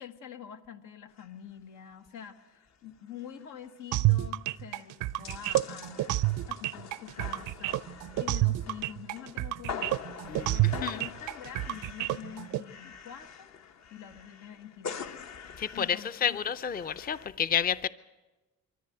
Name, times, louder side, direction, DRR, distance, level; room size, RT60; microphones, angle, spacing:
voice 1, 0.0-6.2 6.5-10.0 10.3-13.5 13.9-15.2 15.7-16.4, left 9 dB, 90° left, 6 dB, 1.6 m, -46 dB
sound 1, 1.2-1.3 1.6-1.7 2.1-2.4 2.7-2.8 3.1-17.3, left 6 dB, 60° left, 1.2 m, -45 dB
sound 2, 3.9-12.6, right 17 dB, 85° right, 0.6 m, -29 dB
voice 2, 10.3-11.0 15.6-17.9, left 8 dB, 30° left, 14 dB, 0.6 m, -30 dB
23.5 x 14.0 x 7.9 m, 1.2 s
cardioid pair, 90°, 30 cm